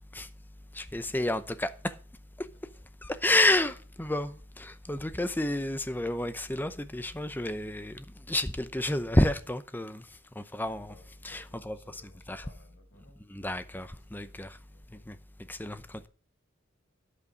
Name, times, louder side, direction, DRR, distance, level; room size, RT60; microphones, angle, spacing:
voice 1, 0.7-1.7 3.0-10.0 10.4-10.9 11.2-12.0 12.3-12.4 13.3-14.6 15.1-15.2 15.5-15.8, left 1 dB, 10° left, 0.7 m, -30 dB
voice 2, 5.1-5.4 10.6-13.2 14.1-14.4 14.7-15.0, left 2 dB, 65° left, 5.1 m, -61 dB
9.6 x 8.3 x 5.1 m
head